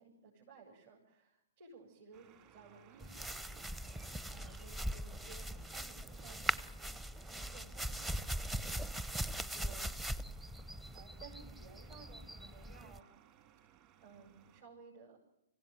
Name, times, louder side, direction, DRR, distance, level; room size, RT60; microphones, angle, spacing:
voice 1, 0.0-3.6 4.3-8.7 9.4-9.9 10.9-13.0 14.0-15.2, right 5 dB, 55° right, -1 dB, 6.6 m, -58 dB
sound 1, 2.1-14.6, right 10 dB, 35° right, 3.2 m, -63 dB
sound 2, 3.0-13.0, right 1 dB, 10° right, 0.8 m, -41 dB
25.5 x 16.0 x 9.4 m, 0.88 s
figure-of-eight pair, 120°, 0 cm